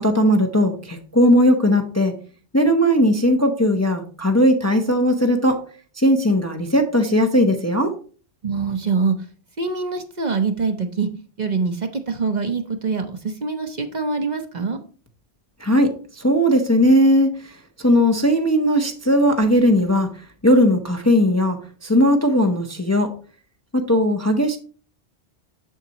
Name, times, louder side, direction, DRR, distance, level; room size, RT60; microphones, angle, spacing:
voice 1, 0.0-2.1 2.5-5.6 6.0-7.9 15.6-20.1 20.4-23.1 23.7-24.6, equal, 20° left, 4 dB, 0.6 m, -18 dB
voice 2, 8.4-9.1 9.6-11.1 11.4-14.8, right 4 dB, 45° right, 6 dB, 0.8 m, -24 dB
7.3 x 7.2 x 2.9 m, 0.40 s
omnidirectional pair, 1.1 m